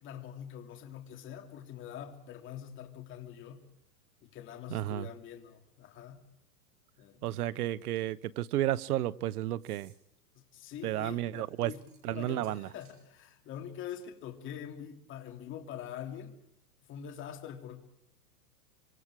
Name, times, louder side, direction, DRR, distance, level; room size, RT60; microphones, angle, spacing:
voice 1, 0.0-3.6 4.2-6.2 7.0-7.4 10.3-16.4 16.9-17.8, left 9 dB, 25° left, 2.8 m, -44 dB
voice 2, 4.7-5.1 7.2-9.9 10.8-11.7 12.0-12.7, right 13 dB, 70° right, 1.1 m, -32 dB
sound 1, 7.8-8.2 9.5-10.0 11.4-13.0, right 7 dB, 30° right, 5.4 m, -64 dB
25.5 x 25.0 x 4.9 m
supercardioid pair, 155°, 46 cm